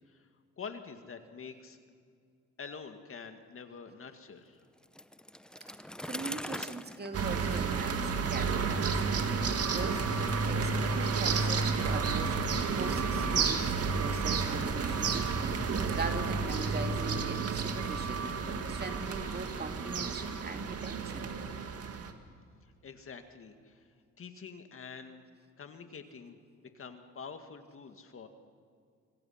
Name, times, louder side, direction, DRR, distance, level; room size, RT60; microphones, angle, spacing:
voice 1, 0.6-1.8 2.6-4.6 22.6-23.9 24.2-25.2 25.6-26.4 26.7-28.3, left 5 dB, 45° left, 7 dB, 2.0 m, -46 dB
Bicycle, 4.8-8.7, left 1 dB, 5° left, 0.7 m, -43 dB
voice 2, 5.8-12.4 12.7-18.4 18.7-21.3, right 3 dB, 35° right, 5 dB, 2.2 m, -41 dB
sound 1, 7.1-22.1, right 5 dB, 50° right, 2.0 m, -31 dB
25.0 x 25.0 x 5.9 m, 2.2 s
cardioid pair, 90°, 30 cm